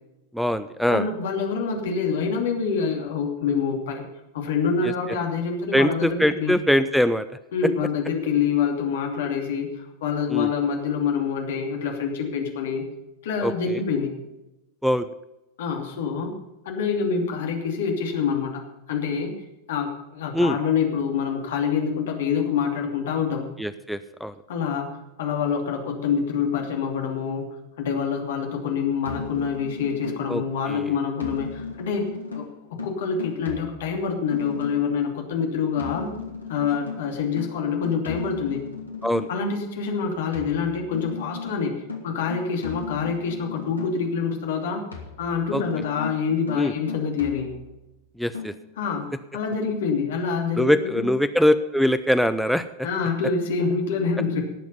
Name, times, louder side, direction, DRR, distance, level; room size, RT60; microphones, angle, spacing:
voice 1, 0.3-1.1 4.8-4.9 5.7-7.3 10.3-10.5 13.4-13.8 14.8-15.1 20.3-20.6 23.6-24.3 30.3-30.9 39.0-39.3 45.5-45.6 46.6-46.7 48.2-48.5 50.6-52.6, equal, ahead, 9 dB, 0.5 m, -22 dB
voice 2, 0.9-4.1 4.3-6.5 7.5-12.8 13.2-14.1 15.6-16.3 16.6-19.3 19.7-23.5 24.5-32.4 32.8-36.1 36.5-38.6 39.3-41.7 42.0-44.8 45.2-47.5 48.8-51.1 52.8-54.4, left 6 dB, 55° left, 2 dB, 2.8 m, -26 dB
sound 1, 29.0-30.5 31.2-35.0 35.8-39.5 40.3-44.2 44.9-47.9 48.3-48.5, left 4 dB, 80° left, 2.4 m, -36 dB
18.5 x 7.1 x 5.6 m, 0.96 s
figure-of-eight pair, 90°, 0 cm